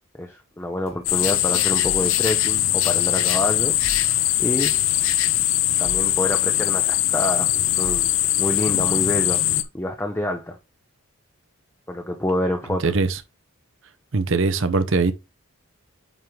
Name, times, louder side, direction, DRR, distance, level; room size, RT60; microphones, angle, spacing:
voice 1, 0.2-4.7 5.8-7.5 7.8-8.1 8.4-9.4 9.7-10.6 11.9-12.8, left 1 dB, 10° left, 0.6 m, -27 dB
sound 1, 0.9-8.9, equal, 30° left, 1.6 m, -44 dB
sound 2, 1.1-9.6, left 13 dB, 65° left, 0.6 m, -21 dB
voice 2, 12.8-13.2 14.1-15.1, right 3 dB, 60° right, 0.7 m, -21 dB
9.0 x 3.7 x 3.1 m
head